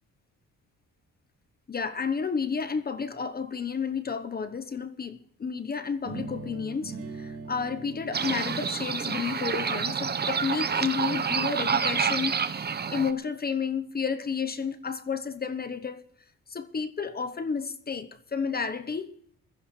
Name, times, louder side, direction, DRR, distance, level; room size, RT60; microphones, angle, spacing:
voice 1, 1.7-12.4 12.9-16.0 16.5-19.1, left 6 dB, 30° left, 1.0 m, -31 dB
sound 1, 6.0-12.0, right 4 dB, 50° right, 3.0 m, -43 dB
sound 2, 8.1-13.1, right 6 dB, 35° right, 0.9 m, -28 dB
22.0 x 14.5 x 3.3 m
cardioid pair, 90°, 30 cm